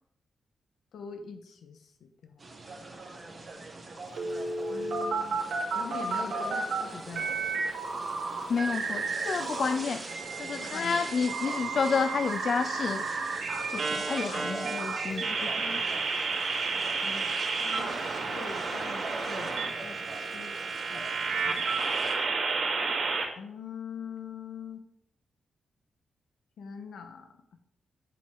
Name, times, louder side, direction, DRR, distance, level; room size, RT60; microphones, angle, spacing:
voice 1, 0.9-2.5 4.7-5.4 5.7-7.6 10.6-11.0 17.0-20.6 20.9-21.1 21.4-21.8 23.3-24.8 26.6-27.3, left 6 dB, 80° left, 5 dB, 1.2 m, -43 dB
sound 1, 2.4-22.1, right 2 dB, 35° right, 1.8 m, -42 dB
sound 2, 4.2-6.8 7.1-9.7 10.1-23.2, right 4 dB, 75° right, 2.7 m, -32 dB
voice 2, 8.5-10.0 10.4-13.4 13.7-15.8, left 5 dB, 55° left, 11 dB, 0.3 m, -30 dB
9.2 x 5.6 x 3.9 m, 0.69 s
cardioid pair, 95°, 0 cm